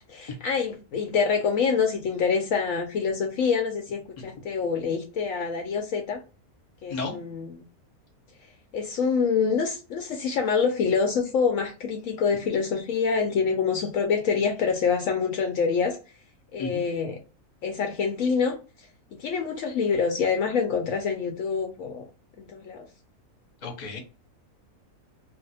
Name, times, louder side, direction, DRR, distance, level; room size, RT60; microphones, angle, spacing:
voice 1, 0.1-6.2 6.8-7.6 8.7-16.0 16.5-17.2 17.6-18.6 19.2-22.0 22.4-22.9, left 5 dB, 70° left, 0.9 m, -26 dB
voice 2, 23.6-24.0, left 3 dB, 35° left, 0.8 m, -33 dB
2.6 x 2.1 x 4.0 m
omnidirectional pair, 1.6 m